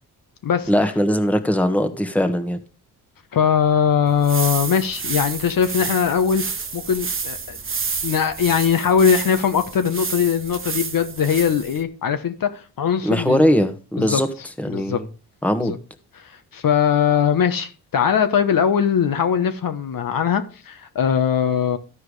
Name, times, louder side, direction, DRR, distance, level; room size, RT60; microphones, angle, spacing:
voice 1, 0.7-2.6 13.0-14.3 14.6-15.1 15.4-15.7, equal, 5° left, 1.4 m, -20 dB
voice 2, 3.3-6.4 6.7-7.6 8.0-13.5 14.0-14.2 14.7-15.0 15.6-15.8 16.2-21.8, left 7 dB, 55° left, 1.1 m, -20 dB
sound 1, 4.1-11.8, right 5 dB, 30° right, 1.2 m, -30 dB
13.5 x 4.7 x 4.8 m
cardioid pair, 65°, 40 cm